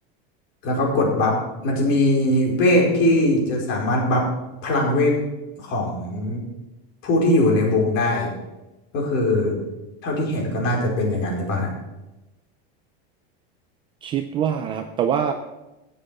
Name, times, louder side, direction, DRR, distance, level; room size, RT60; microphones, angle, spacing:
voice 1, 0.6-1.4 1.6-4.2 4.6-5.2 5.6-6.4 7.0-8.3 8.9-9.6 10.0-11.7, left 1 dB, 40° left, -1 dB, 4.7 m, -20 dB
voice 2, 14.0-15.3, right 8 dB, 15° right, 7 dB, 0.4 m, -24 dB
14.5 x 7.8 x 7.6 m, 1.0 s
supercardioid pair, 175°, 29 cm